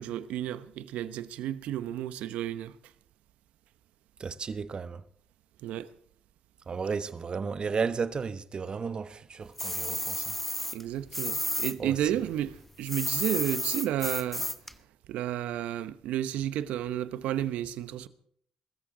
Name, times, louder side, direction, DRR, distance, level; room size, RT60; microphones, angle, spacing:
voice 1, 0.0-2.8 5.6-5.9 10.7-14.5 15.1-18.1, right 11 dB, 75° right, 0.9 m, -32 dB
voice 2, 4.2-5.0 6.7-10.3 11.8-12.1, right 5 dB, 40° right, 1.2 m, -33 dB
sound 1, 9.6-11.7 12.0-14.7, left 1 dB, 5° left, 1.0 m, -32 dB
22.5 x 14.0 x 3.9 m
hypercardioid pair, 55°, 2 cm